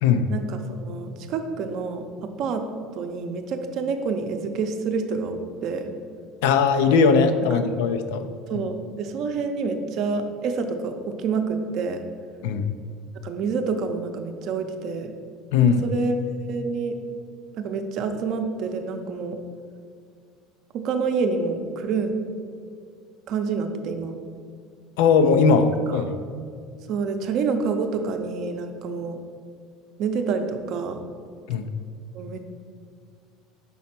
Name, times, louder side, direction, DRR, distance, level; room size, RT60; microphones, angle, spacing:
voice 1, 0.3-2.6 2.9-5.9 7.5-7.6 8.5-12.0 13.2-15.1 15.8-16.2 16.5-17.0 17.5-19.4 20.7-22.1 23.3-24.2 25.9-26.1 26.9-29.2 30.0-31.1 32.1-32.4, right 4 dB, 50° right, 6 dB, 0.6 m, -28 dB
voice 2, 6.4-8.3 8.5-8.7 12.4-12.7 15.5-15.8 25.0-26.1 31.5-31.7, left 5 dB, 85° left, 9 dB, 0.5 m, -19 dB
5.5 x 4.2 x 5.8 m, 2.2 s
cardioid pair, 140°, 0 cm